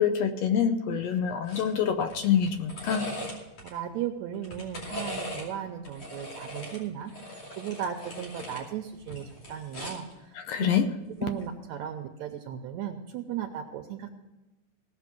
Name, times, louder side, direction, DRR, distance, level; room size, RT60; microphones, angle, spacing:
voice 1, 0.0-3.1 10.3-10.9, left 8 dB, 75° left, 8 dB, 1.6 m, -26 dB
sound 1, 1.5-1.7 2.0-3.7 4.3-5.5 5.8-8.6 9.0-10.1 11.3-11.5, left 1 dB, 55° left, 3.7 m, -39 dB
voice 2, 3.6-10.7 11.2-14.1, right 9 dB, 75° right, 5 dB, 1.9 m, -36 dB
17.5 x 6.7 x 6.0 m, 1.1 s
omnidirectional pair, 3.6 m